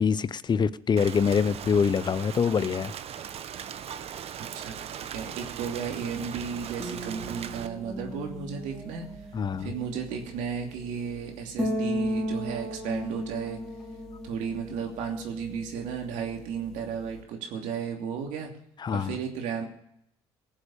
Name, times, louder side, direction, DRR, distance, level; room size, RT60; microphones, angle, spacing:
voice 1, 0.0-2.9 9.3-9.7 18.8-19.1, left 6 dB, 35° left, 17 dB, 0.7 m, -25 dB
Rain, 1.0-7.7, right 9 dB, 55° right, 0.9 m, -39 dB
voice 2, 4.4-9.1 9.6-13.6 14.2-18.5 18.9-19.7, right 6 dB, 75° right, 2 dB, 2.8 m, -34 dB
sound 1, 4.7-17.2, equal, 5° left, 4.4 m, -37 dB
18.5 x 7.4 x 6.9 m, 0.75 s
supercardioid pair, 70°, 13 cm